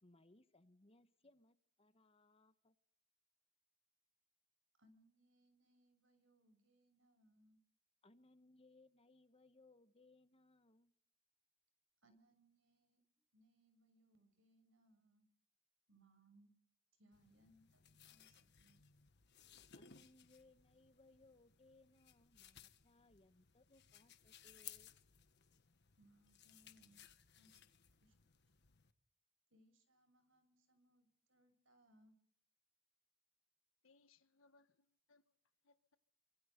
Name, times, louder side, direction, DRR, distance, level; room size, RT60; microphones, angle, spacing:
voice 1, 0.0-2.7 8.0-10.9 19.7-24.9, left 2 dB, 30° left, 1.3 m, -68 dB
voice 2, 4.8-7.6 12.0-13.0 13.3-15.3 15.9-16.5 16.9-18.8 26.0-27.0 27.3-27.6 28.0-28.1 29.5-32.1, right 1 dB, 75° right, 6.5 m, -72 dB
sound 1, 17.1-28.9, left 10 dB, 60° left, 1.5 m, -62 dB
voice 3, 33.8-35.4 35.6-36.0, left 3 dB, 80° left, 1.5 m, -72 dB
27.5 x 25.5 x 5.3 m
head